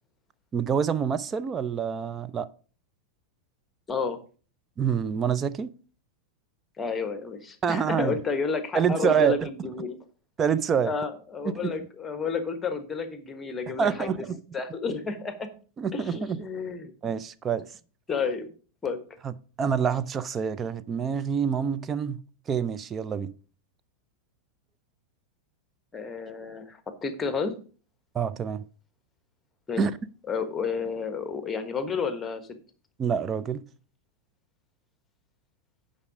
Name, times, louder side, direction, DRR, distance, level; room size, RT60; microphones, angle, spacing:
voice 1, 0.5-2.5 4.8-5.7 7.6-8.1 8.7-9.5 10.4-10.9 11.4-11.7 13.7-14.4 15.8-16.4 17.0-17.7 19.2-19.3 19.6-22.2 22.5-23.3 28.1-28.6 29.8-29.9 33.0-33.6, right 7 dB, 25° right, 0.5 m, -26 dB
voice 2, 3.9-4.2 6.8-10.0 10.8-14.1 14.5-15.5 15.9-17.1 18.1-18.5 18.8-19.0 25.9-27.5 29.7-29.8 30.3-32.4, left 5 dB, 15° left, 1.3 m, -31 dB
9.6 x 5.5 x 4.9 m
figure-of-eight pair, 90°, 0 cm